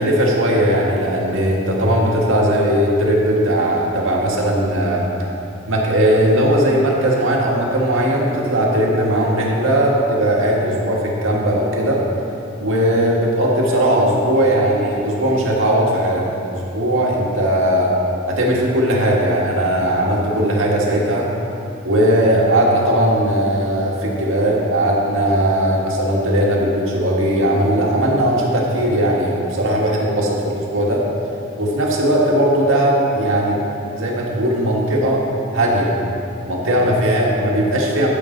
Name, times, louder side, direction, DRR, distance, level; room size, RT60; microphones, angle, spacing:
voice 1, 0.0-5.1 5.7-12.0 12.6-16.2 16.5-17.9 18.3-21.3 21.8-31.1 31.6-33.6 34.0-35.2 35.5-35.9 36.5-38.1, right 1 dB, 75° right, -3 dB, 1.9 m, -18 dB
14.0 x 7.3 x 4.0 m, 2.7 s
head